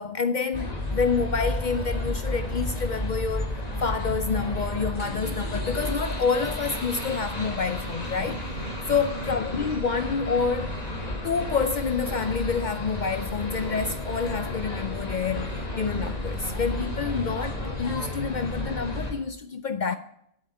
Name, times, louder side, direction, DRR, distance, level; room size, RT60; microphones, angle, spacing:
voice 1, 0.0-8.5 8.9-10.9 11.2-20.0, left 5 dB, 55° left, 0.5 m, -28 dB
sound 1, 0.5-19.1, left 1 dB, 35° left, 2.1 m, -32 dB
7.9 x 7.8 x 8.3 m
omnidirectional pair, 1.2 m